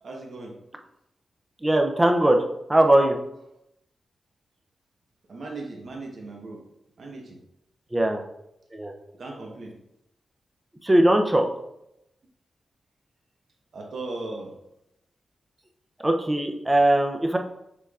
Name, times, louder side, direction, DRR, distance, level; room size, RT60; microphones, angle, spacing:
voice 1, 0.0-0.5 5.3-6.6 7.0-7.4 9.1-9.7 13.7-14.5, right 2 dB, 60° right, 0 dB, 1.1 m, -37 dB
voice 2, 1.6-2.4 2.7-3.2 7.9-8.2 8.7-8.9 10.8-11.5 16.0-17.4, right 1 dB, 15° right, 4 dB, 0.5 m, -20 dB
6.6 x 3.3 x 2.4 m, 0.83 s
wide cardioid pair, 120°, 0 cm